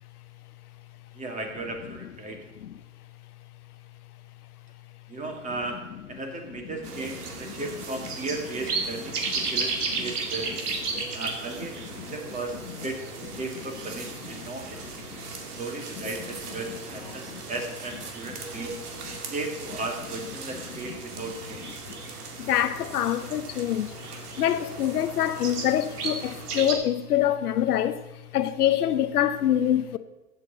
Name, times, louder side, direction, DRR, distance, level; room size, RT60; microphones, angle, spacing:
voice 1, 1.1-2.4 5.1-10.6 11.1-15.1 15.6-18.7 19.3-21.7, right 2 dB, 15° right, 2.0 m, -36 dB
sound 1, 6.8-26.7, right 4 dB, 90° right, 2.1 m, -35 dB
voice 2, 22.4-23.9 24.4-30.0, left 11 dB, 85° left, 0.9 m, -26 dB
15.0 x 8.3 x 3.9 m
hypercardioid pair, 125°, 44 cm